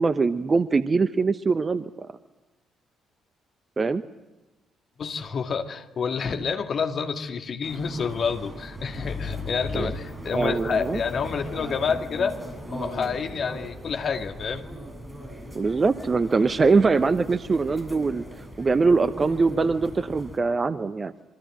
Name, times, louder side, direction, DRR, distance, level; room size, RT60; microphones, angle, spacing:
voice 1, 0.0-1.9 3.8-4.0 9.7-9.9 10.3-11.0 15.5-18.2 18.6-21.1, right 4 dB, 30° right, 13 dB, 0.9 m, -22 dB
voice 2, 5.0-12.4 12.7-14.6, left 6 dB, 45° left, 5 dB, 2.2 m, -28 dB
sound 1, 7.6-20.4, equal, 10° right, 7.3 m, -39 dB
27.5 x 24.5 x 7.7 m, 1.1 s
figure-of-eight pair, 45°, 0 cm